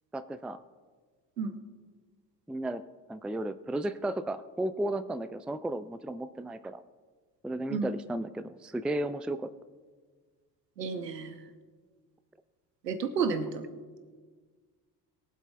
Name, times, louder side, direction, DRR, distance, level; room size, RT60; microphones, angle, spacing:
voice 1, 0.1-0.6 2.5-2.8 3.1-6.8 7.4-9.5, right 1 dB, ahead, 13 dB, 0.4 m, -34 dB
voice 2, 10.8-11.4 12.8-13.6, right 5 dB, 85° right, 9 dB, 0.9 m, -31 dB
22.5 x 7.7 x 2.3 m, 1.5 s
figure-of-eight pair, 50°, 48 cm